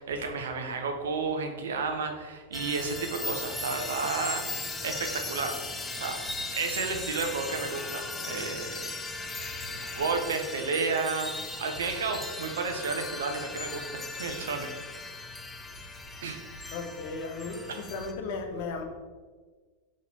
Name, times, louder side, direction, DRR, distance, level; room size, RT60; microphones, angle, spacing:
voice 1, 0.0-4.4 4.8-5.6 5.9-6.2 6.5-8.8 10.0-14.7 16.2-16.4, right 4 dB, 75° right, 4 dB, 0.6 m, -32 dB
sound 1, 2.5-18.1, left 2 dB, 10° left, 0.5 m, -38 dB
voice 2, 16.7-18.8, left 4 dB, 60° left, 5 dB, 0.7 m, -35 dB
4.1 x 3.1 x 4.0 m, 1.4 s
hypercardioid pair, 95°, 0 cm